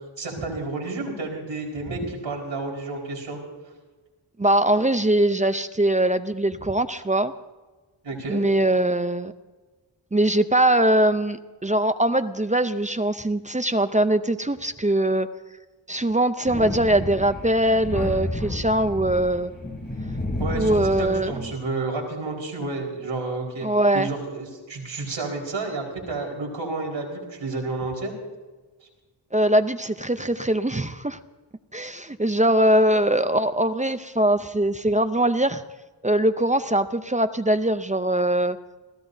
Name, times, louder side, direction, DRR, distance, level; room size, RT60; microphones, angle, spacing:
voice 1, 0.2-3.4 8.0-8.5 20.4-23.7 23.9-28.1, right 3 dB, 75° right, -1 dB, 4.6 m, -30 dB
voice 2, 4.4-7.3 8.3-9.3 10.1-15.3 15.9-19.5 20.6-21.3 23.6-24.1 29.3-31.2 31.7-35.6 36.0-38.6, right 1 dB, 15° right, 10 dB, 0.5 m, -22 dB
Thunder, 16.4-21.5, left 1 dB, 25° left, 6.5 m, -31 dB
29.5 x 16.0 x 2.7 m, 1.3 s
wide cardioid pair, 120°, 46 cm